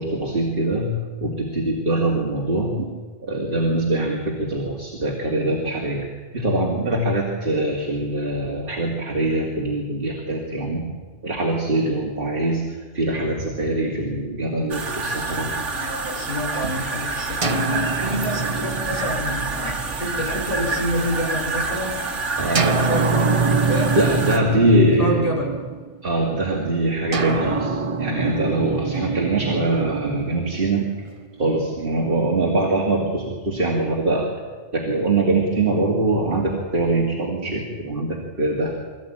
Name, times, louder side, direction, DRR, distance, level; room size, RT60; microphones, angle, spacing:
voice 1, 0.0-2.9 3.2-6.1 6.3-10.9 11.2-15.5 22.4-23.0 23.9-25.3 26.0-30.9 31.4-34.3 34.7-38.8, right 2 dB, 50° right, -1 dB, 2.6 m, -23 dB
sound 1, 14.7-24.4, right 3 dB, 75° right, 1.9 m, -28 dB
voice 2, 15.6-22.0 22.6-23.9 24.4-25.5 32.0-32.3, left 1 dB, 30° left, -2 dB, 5.2 m, -28 dB
sound 2, 17.4-21.2 22.5-26.1 27.1-31.3, right 4 dB, 30° right, 0.9 m, -25 dB
23.5 x 14.5 x 8.8 m, 1.5 s
omnidirectional pair, 1.2 m